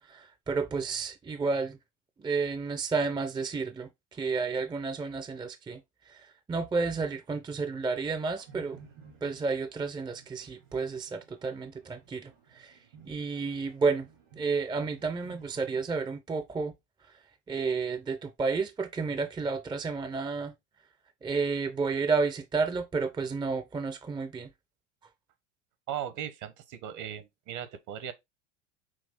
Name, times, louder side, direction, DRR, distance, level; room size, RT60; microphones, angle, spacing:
voice 1, 0.1-1.8 2.2-5.8 6.1-8.8 9.2-12.8 13.0-14.1 14.4-16.7 17.5-20.5 21.2-24.5, right 4 dB, 10° right, 0.5 m, -31 dB
sound 1, 7.8-15.9, right 6 dB, 80° right, 2.9 m, -56 dB
voice 2, 25.9-28.1, right 10 dB, 55° right, 1.1 m, -38 dB
6.2 x 2.3 x 3.6 m
hypercardioid pair, 85°, 37 cm